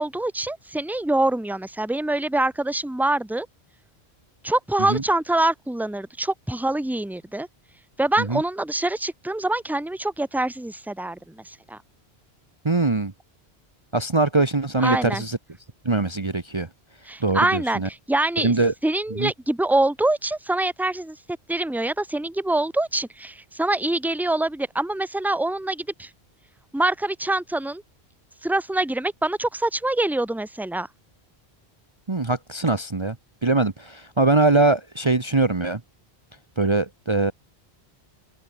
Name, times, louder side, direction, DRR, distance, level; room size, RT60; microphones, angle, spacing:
voice 1, 0.0-3.5 4.4-7.5 8.0-11.8 14.8-15.2 17.1-18.5 18.8-21.2 21.5-26.1 26.7-27.8 28.4-30.9, right 2 dB, ahead, 1.5 m, -25 dB
voice 2, 12.6-13.1 13.9-15.4 15.8-16.7 17.2-17.9 18.4-18.7 19.1-19.3 32.1-33.2 33.4-35.8 36.6-37.3, right 3 dB, 25° right, 1.2 m, -22 dB
omnidirectional pair, 1.1 m